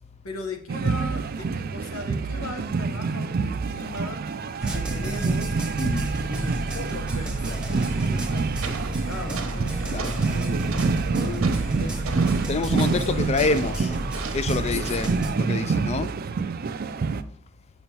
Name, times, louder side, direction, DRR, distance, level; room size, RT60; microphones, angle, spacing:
voice 1, 0.2-4.2 4.7-5.5 6.3-10.7 11.1-13.6 14.6-14.8 15.1-15.3, left 2 dB, 90° left, 1.1 m, -38 dB
sound 1, 0.7-17.2, right 4 dB, 45° right, 0.4 m, -27 dB
sound 2, 4.6-15.3, right 1 dB, 5° right, 0.9 m, -32 dB
voice 2, 5.8-6.1 9.9-10.1 12.5-13.9 14.3-16.1, left 3 dB, 30° left, 0.3 m, -27 dB
sound 3, 8.4-15.3, right 4 dB, 85° right, 1.0 m, -38 dB
6.9 x 6.2 x 2.9 m
head